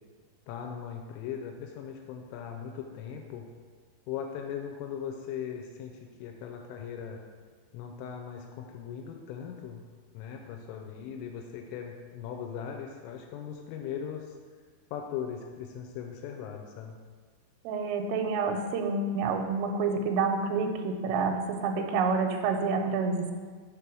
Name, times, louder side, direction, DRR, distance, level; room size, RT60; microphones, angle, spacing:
voice 1, 0.5-3.5 4.1-5.9 6.2-7.2 7.7-9.8 10.1-14.3 14.9-16.9, left 8 dB, 90° left, 3 dB, 2.9 m, -39 dB
voice 2, 17.7-23.3, right 4 dB, 85° right, 3 dB, 2.8 m, -28 dB
6.9 x 3.3 x 6.0 m, 1.5 s
omnidirectional pair, 5.2 m